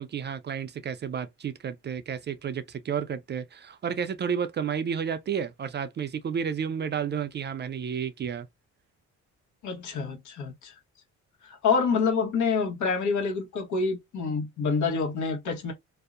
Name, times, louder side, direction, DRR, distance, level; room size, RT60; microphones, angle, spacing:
voice 1, 0.0-8.5, right 7 dB, 35° right, 0.4 m, -31 dB
voice 2, 9.6-10.7 11.4-15.7, left 5 dB, 70° left, 1.1 m, -27 dB
2.6 x 2.0 x 2.4 m
cardioid pair, 90°, 30 cm